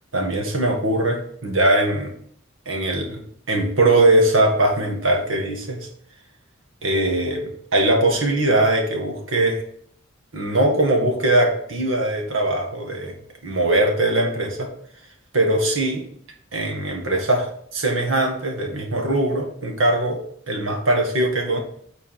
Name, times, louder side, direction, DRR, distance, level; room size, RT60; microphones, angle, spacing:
voice 1, 0.1-2.1 2.7-3.2 3.5-5.9 6.8-9.6 10.3-13.2 13.4-14.7 15.3-16.0 16.5-21.6, right 1 dB, 80° right, 2 dB, 1.9 m, -21 dB
9.5 x 4.2 x 5.7 m, 0.65 s
head